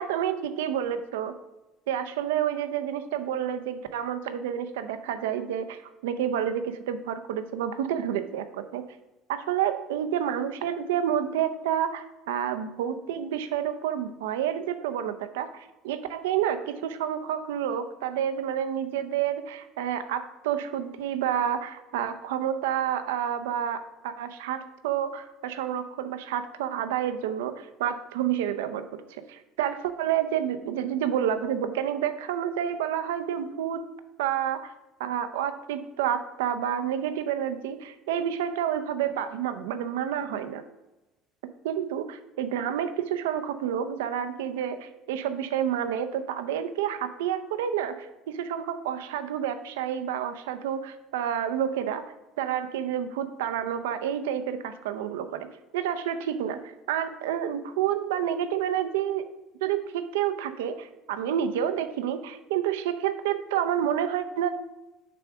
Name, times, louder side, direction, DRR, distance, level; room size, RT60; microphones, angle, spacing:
voice 1, 0.0-1.3 1.9-8.8 9.3-29.0 29.3-33.8 34.2-34.7 35.0-40.6 41.6-55.5 55.7-59.3 59.6-64.5, right 9 dB, 90° right, 10 dB, 0.5 m, -29 dB
6.8 x 3.5 x 6.0 m, 1.0 s
supercardioid pair, 85°, 0 cm